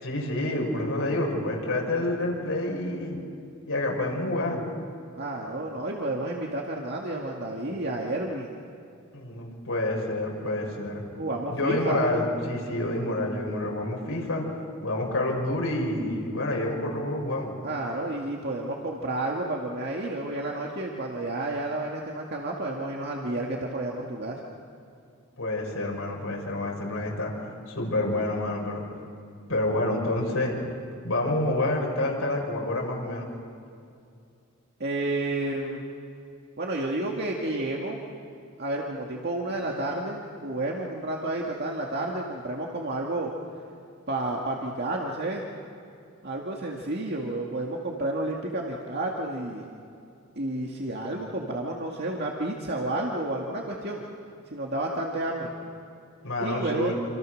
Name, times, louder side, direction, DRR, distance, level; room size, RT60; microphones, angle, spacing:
voice 1, 0.0-3.2 3.6-4.6 9.1-11.0 11.5-14.4 14.8-17.5 25.4-28.8 29.5-30.6 31.0-33.3 56.2-56.9, left 1 dB, 90° left, -1 dB, 6.2 m, -28 dB
voice 2, 5.2-8.6 11.1-12.0 17.6-24.4 34.8-35.8 36.6-38.0 38.6-43.3 44.1-45.4 46.2-49.7 50.4-54.0 54.5-55.5 56.4-56.9, right 2 dB, 50° right, -1 dB, 2.1 m, -31 dB
28.0 x 26.5 x 6.5 m, 2.5 s
head